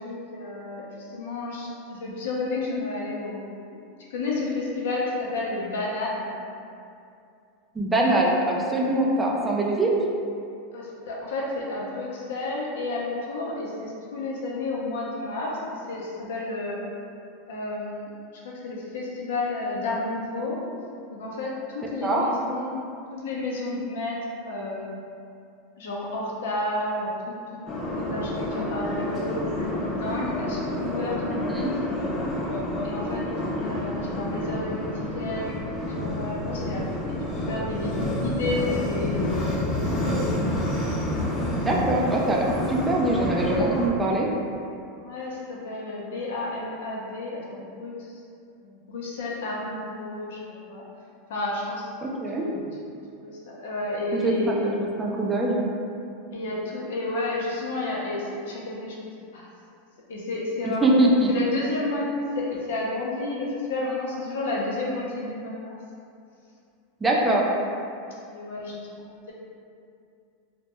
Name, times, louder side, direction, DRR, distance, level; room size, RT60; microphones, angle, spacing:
voice 1, 0.0-3.6 4.1-6.3 10.7-16.8 17.5-20.6 21.1-22.8 23.1-25.0 25.8-27.4 28.0-31.7 32.8-33.3 33.6-37.2 37.5-40.3 45.0-48.2 48.6-50.9 51.3-51.9 52.3-52.6 53.2-54.8 56.3-59.1 59.3-59.5 60.1-61.0 61.3-62.1 62.3-65.8 67.1-67.5 68.3-69.3, left 2 dB, 80° left, -4 dB, 0.5 m, -31 dB
voice 2, 7.7-9.9 22.0-22.2 31.5-31.7 41.7-44.3 52.0-52.4 54.1-55.7 60.8-61.3 67.0-67.4, right 1 dB, 15° right, -3 dB, 0.3 m, -23 dB
sound 1, 27.7-43.9, left 1 dB, 30° left, 0.6 m, -29 dB
2.1 x 2.1 x 2.9 m, 2.5 s
hypercardioid pair, 115°, 0 cm